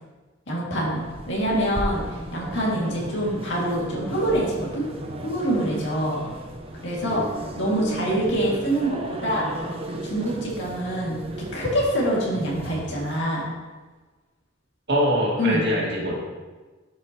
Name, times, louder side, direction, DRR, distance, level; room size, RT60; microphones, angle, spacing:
voice 1, 0.5-2.0 2.3-4.9 5.2-6.2 6.8-7.2 7.6-9.5 10.0-11.2 11.5-13.5 15.4-15.6, right 1 dB, 65° left, -5 dB, 2.3 m, -25 dB
sound 1, 0.9-13.2, right 1 dB, 30° right, 0.8 m, -35 dB
voice 2, 14.9-16.1, equal, 60° right, -4 dB, 2.2 m, -23 dB
12.0 x 5.6 x 3.0 m, 1.3 s
head